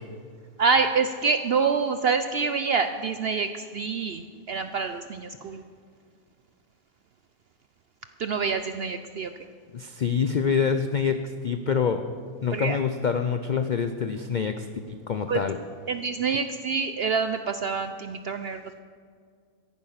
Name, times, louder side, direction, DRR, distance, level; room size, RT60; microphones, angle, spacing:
voice 1, 0.6-5.6 8.2-9.3 12.5-12.8 15.3-15.4 15.9-18.8, right 5 dB, 70° right, 8 dB, 0.6 m, -26 dB
voice 2, 9.7-12.1 12.4-15.6, left 6 dB, 80° left, 8 dB, 0.4 m, -26 dB
14.0 x 11.0 x 5.7 m, 2.1 s
omnidirectional pair, 1.6 m